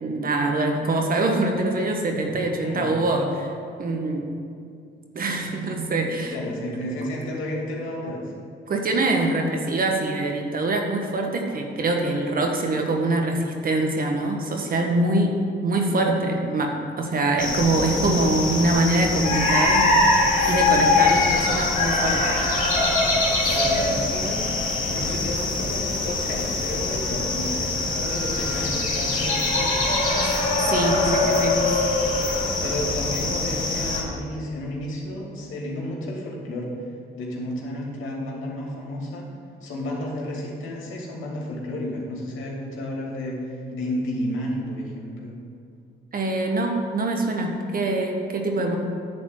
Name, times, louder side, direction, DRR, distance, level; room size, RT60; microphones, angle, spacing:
voice 1, 0.0-3.5 3.8-4.2 5.1-6.4 8.7-15.3 15.6-22.4 30.7-31.6 46.1-48.8, right 2 dB, 45° right, 3 dB, 1.4 m, -24 dB
voice 2, 6.3-8.2 23.4-29.8 32.6-36.7 37.1-39.3 39.6-45.3, left 1 dB, 85° left, -2 dB, 2.5 m, -32 dB
sound 1, 17.4-34.0, left 2 dB, 40° left, 2.3 m, -23 dB
11.0 x 4.2 x 7.8 m, 2.4 s
cardioid pair, 90°, 20 cm